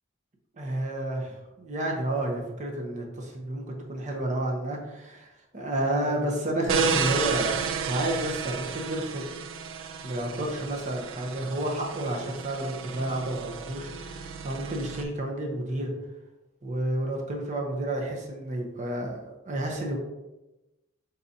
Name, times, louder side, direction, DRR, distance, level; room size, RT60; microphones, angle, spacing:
voice 1, 0.5-3.6 3.9-9.2 10.0-15.9 16.6-20.0, right 1 dB, 40° right, 1 dB, 0.8 m, -30 dB
sound 1, 6.7-15.0, right 7 dB, 80° right, 0.4 m, -33 dB
4.1 x 3.8 x 2.7 m, 1.0 s
head